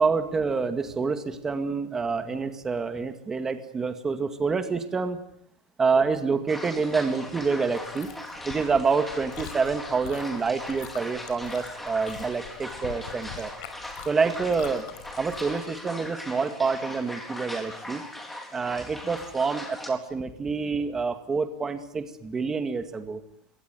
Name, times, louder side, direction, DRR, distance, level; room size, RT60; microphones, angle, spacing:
voice 1, 0.0-5.2 5.8-8.1 8.4-13.5 14.1-14.9 15.2-18.0 18.5-23.2, right 4 dB, 15° right, 8 dB, 2.1 m, -27 dB
sound 1, 6.5-19.9, left 1 dB, 5° left, 4.2 m, -40 dB
Chewing mastication, 7.7-15.6, left 10 dB, 70° left, 5.4 m, -45 dB
26.5 x 23.0 x 9.6 m, 0.71 s
supercardioid pair, 175°, 4 cm